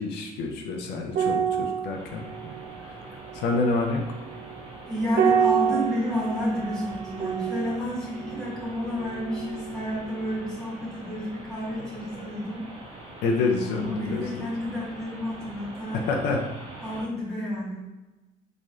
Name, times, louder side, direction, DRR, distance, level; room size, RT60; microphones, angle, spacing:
voice 1, 0.0-2.3 2.8-4.1 11.7-12.3 13.2-14.5 15.9-16.4, left 3 dB, 80° left, 2 dB, 0.5 m, -28 dB
sound 1, 1.1-9.8 10.1-10.3, right 7 dB, 65° right, 0.4 m, -29 dB
sound 2, 1.9-17.1, right 2 dB, 35° right, 1.2 m, -44 dB
voice 2, 4.8-12.6 13.7-16.1 16.8-17.8, equal, 5° left, -7 dB, 1.5 m, -31 dB
3.1 x 2.6 x 3.6 m, 1.1 s
cardioid pair, 110°, 17 cm